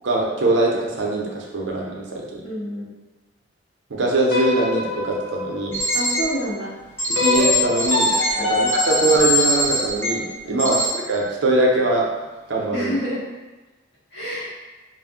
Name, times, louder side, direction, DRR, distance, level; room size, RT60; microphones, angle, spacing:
voice 1, 0.0-2.4 3.9-5.8 7.1-12.1 12.5-12.9, right 2 dB, 70° right, -2 dB, 0.5 m, -22 dB
voice 2, 2.4-2.9 5.9-6.7 8.3-8.5 10.4-10.7 12.7-13.2 14.1-14.5, equal, 60° left, -9 dB, 1.1 m, -28 dB
sound 1, 4.3-6.4 7.1-10.3, left 2 dB, 85° left, 0.8 m, -25 dB
sound 2, 5.7-6.2 7.0-10.1 10.6-10.9, left 1 dB, 10° left, 0.5 m, -22 dB
2.4 x 2.0 x 3.5 m, 1.2 s
head